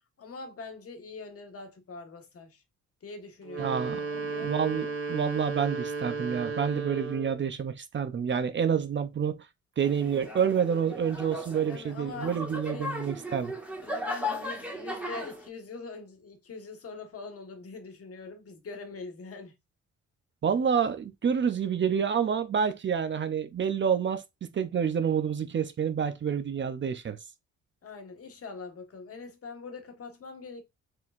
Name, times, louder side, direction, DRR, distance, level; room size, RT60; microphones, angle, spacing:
voice 1, 0.2-2.6 3.0-3.8 4.1-4.5 11.6-12.9 13.8-19.5 27.8-30.6, left 4 dB, 50° left, 1.4 m, -43 dB
sound 1, 3.4-7.4, right 4 dB, 55° right, 1.7 m, -34 dB
voice 2, 3.6-4.1 4.4-9.5 9.8-13.5 20.4-27.2, right 7 dB, 40° right, 0.6 m, -28 dB
sound 2, 9.8-15.5, left 1 dB, 5° right, 1.9 m, -37 dB
4.5 x 3.8 x 2.4 m
cardioid pair, 90°, 30 cm